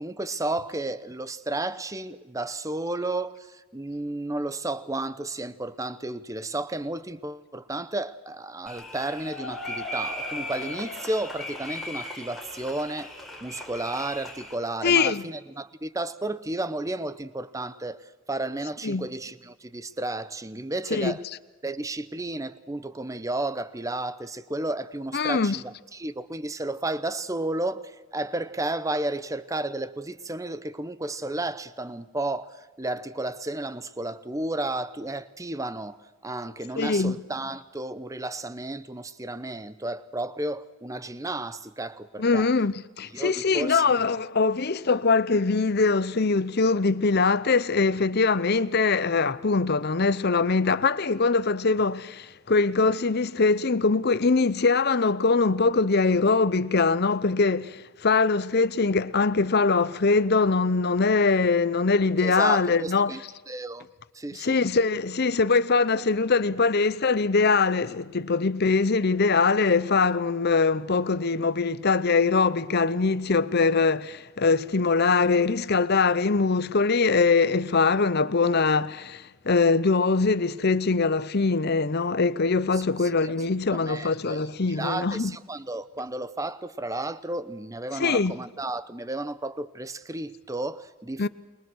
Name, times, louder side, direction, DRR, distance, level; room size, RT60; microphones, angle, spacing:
voice 1, 0.0-13.1 13.4-21.2 21.6-42.5 43.1-43.8 62.2-63.2 63.5-63.9 64.1-64.6 82.7-83.3 83.7-84.4 84.7-91.3, right 2 dB, 15° right, 0.7 m, -32 dB
sound 1, 8.7-14.5, left 1 dB, ahead, 3.8 m, -37 dB
voice 2, 14.8-15.3 18.8-19.1 20.9-21.4 25.1-25.6 36.8-37.2 42.2-63.2 64.3-85.4 87.9-88.3 91.2-91.3, left 4 dB, 45° left, 0.7 m, -22 dB
28.5 x 22.0 x 6.3 m
head